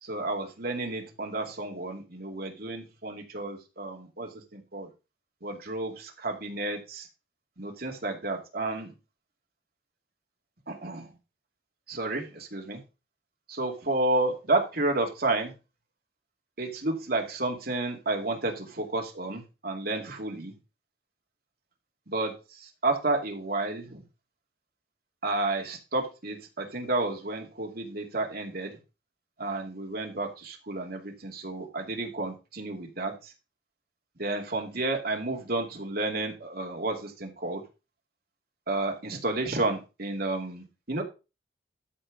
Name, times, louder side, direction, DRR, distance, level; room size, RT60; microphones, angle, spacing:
voice 1, 0.0-4.9 5.4-7.1 7.6-8.9 10.7-11.1 11.9-12.8 13.5-15.5 16.6-20.5 22.1-24.0 25.2-28.8 29.4-33.3 34.2-37.6 38.7-41.0, right 2 dB, 55° right, 2 dB, 2.5 m, -31 dB
13.0 x 4.5 x 5.3 m, 0.29 s
head